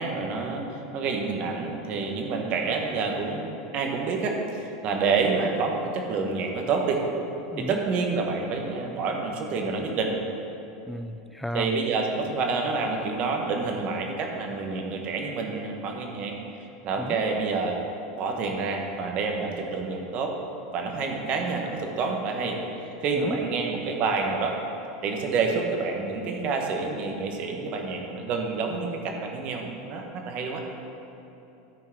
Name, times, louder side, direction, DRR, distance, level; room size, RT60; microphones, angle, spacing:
voice 1, 0.0-7.0 7.6-10.1 11.5-16.3 16.8-17.8 18.2-20.3 20.7-24.6 25.0-30.6, right 4 dB, 45° right, 2 dB, 1.5 m, -28 dB
voice 2, 10.9-11.7 17.0-17.2 23.2-23.4, left 1 dB, 5° left, 9 dB, 0.4 m, -33 dB
13.5 x 4.5 x 6.1 m, 2.9 s
supercardioid pair, 125°, 3 cm